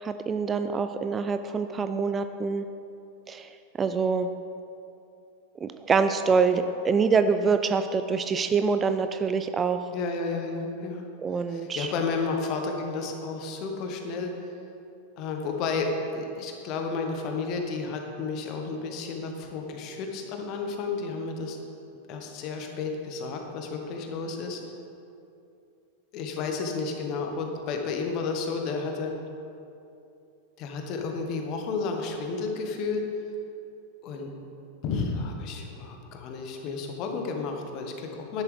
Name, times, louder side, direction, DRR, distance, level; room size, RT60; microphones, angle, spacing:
voice 1, 0.0-2.7 3.3-4.3 5.6-9.9 11.2-11.9, right 5 dB, 20° right, 9 dB, 0.4 m, -25 dB
voice 2, 9.9-11.0 11.5-14.3 15.2-21.6 22.1-24.6 26.1-29.1 30.6-33.1 34.0-34.3 34.8-38.4, left 4 dB, 40° left, 3 dB, 1.4 m, -32 dB
12.0 x 11.0 x 3.4 m, 2.7 s
figure-of-eight pair, 90°, 0 cm